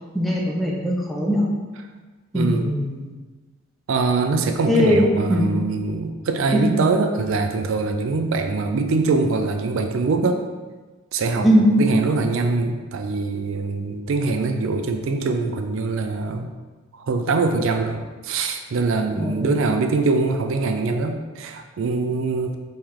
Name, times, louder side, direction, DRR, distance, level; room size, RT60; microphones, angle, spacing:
voice 1, 0.1-1.4 2.3-3.1 4.7-5.5 6.5-6.8 11.4-11.7 19.2-19.4, equal, ahead, -2 dB, 0.5 m, -20 dB
voice 2, 2.3-2.7 3.9-10.4 11.1-11.5 11.8-16.5 16.9-22.5, right 3 dB, 65° right, 6 dB, 0.4 m, -23 dB
4.6 x 3.2 x 3.6 m, 1.3 s
head